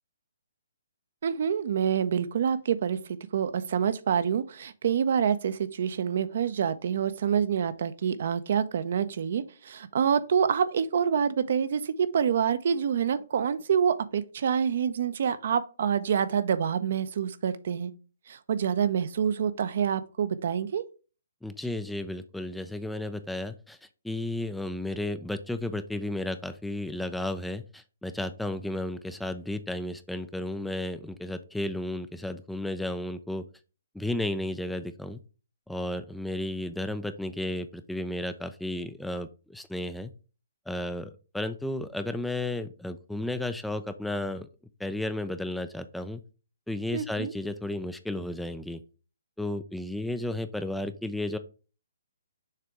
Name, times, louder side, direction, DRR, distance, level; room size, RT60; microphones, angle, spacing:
voice 1, 1.2-17.9 18.3-20.8 46.9-47.3, right 7 dB, 55° right, 0.6 m, -27 dB
voice 2, 21.4-23.8 24.0-33.4 33.9-35.2 35.7-40.1 40.7-44.5 44.8-46.2 46.7-48.8 49.4-51.4, left 1 dB, ahead, 0.4 m, -33 dB
6.6 x 3.4 x 4.8 m
figure-of-eight pair, 130°, 0 cm